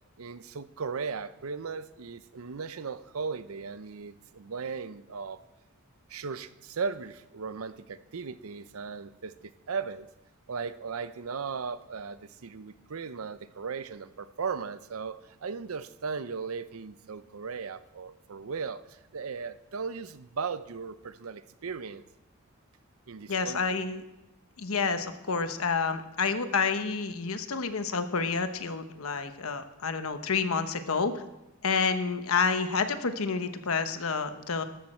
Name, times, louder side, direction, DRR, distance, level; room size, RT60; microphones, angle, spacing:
voice 1, 0.2-5.4 6.1-10.1 10.5-22.0 23.1-23.8, right 5 dB, 90° right, 14 dB, 0.6 m, -37 dB
voice 2, 23.3-24.0 24.6-31.2 31.6-34.6, left 5 dB, 85° left, 9 dB, 1.0 m, -29 dB
14.0 x 13.0 x 4.4 m, 0.94 s
head